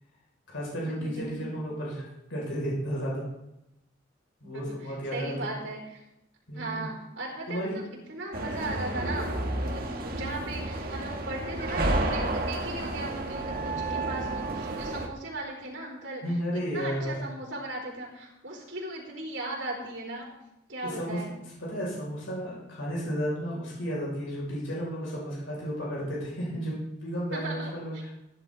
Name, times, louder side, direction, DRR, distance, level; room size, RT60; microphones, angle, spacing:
voice 1, 0.5-2.0 2.3-3.3 4.4-5.5 6.5-6.9 7.5-7.8 16.2-17.1 20.8-21.2 21.6-27.9, equal, 85° left, -5 dB, 5.9 m, -33 dB
voice 2, 1.0-1.4 4.4-6.0 6.5-16.2 16.5-20.3 20.7-21.3 27.3-28.0, right 2 dB, 75° right, -2 dB, 4.2 m, -37 dB
sound 1, 8.3-15.1, right 2 dB, 50° right, 1.4 m, -31 dB
16.5 x 10.5 x 3.9 m, 0.88 s
head